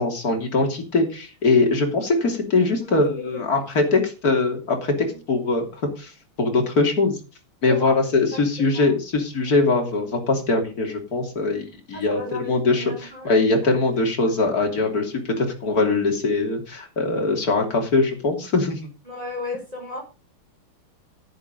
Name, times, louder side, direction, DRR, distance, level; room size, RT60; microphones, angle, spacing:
voice 1, 0.0-4.9 5.3-5.7 6.0-6.1 6.4-7.2 7.6-18.8, left 3 dB, 45° left, 3 dB, 3.5 m, -22 dB
voice 2, 7.7-9.0 11.9-13.3 19.0-20.0, left 2 dB, 15° right, 0 dB, 5.0 m, -35 dB
11.0 x 9.6 x 5.3 m, 0.32 s
omnidirectional pair, 2.4 m